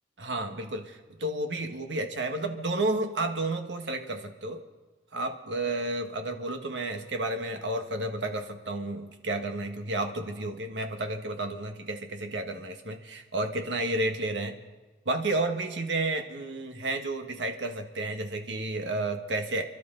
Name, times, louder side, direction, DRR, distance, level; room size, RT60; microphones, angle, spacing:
voice 1, 0.2-4.6 5.1-14.6 15.0-19.6, right 2 dB, 90° right, 5 dB, 1.6 m, -31 dB
29.5 x 12.0 x 3.9 m, 1.3 s
head